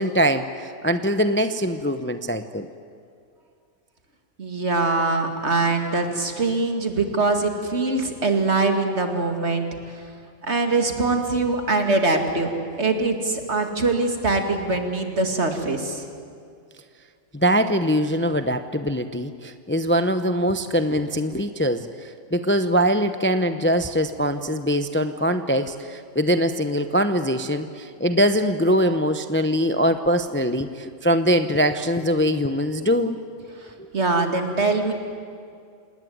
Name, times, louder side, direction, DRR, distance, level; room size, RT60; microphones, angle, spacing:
voice 1, 0.0-2.7 17.3-33.2 33.8-33.9, equal, 10° left, 9 dB, 0.7 m, -22 dB
voice 2, 4.4-9.7 10.4-12.5 12.8-16.0 33.6-34.9, right 3 dB, 60° right, 5 dB, 2.6 m, -23 dB
27.5 x 19.0 x 9.3 m, 2.3 s
omnidirectional pair, 1.3 m